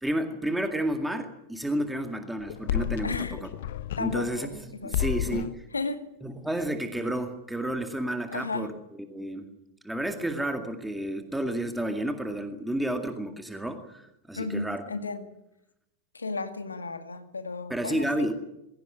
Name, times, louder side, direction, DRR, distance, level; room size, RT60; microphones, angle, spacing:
voice 1, 0.0-3.5 4.0-5.6 6.2-8.7 9.1-9.5 9.8-14.8 17.7-18.3, right 1 dB, 5° right, 6 dB, 2.1 m, -31 dB
sound 1, 2.4-4.6 4.9-5.6, left 11 dB, 55° left, 1.1 m, -31 dB
voice 2, 3.0-3.4 4.0-4.5 4.7-5.0 5.7-6.0 8.3-8.7 14.4-15.3 16.1-18.3, left 3 dB, 75° left, 8 dB, 2.1 m, -33 dB
21.5 x 16.5 x 9.8 m, 0.86 s
figure-of-eight pair, 90°, 0 cm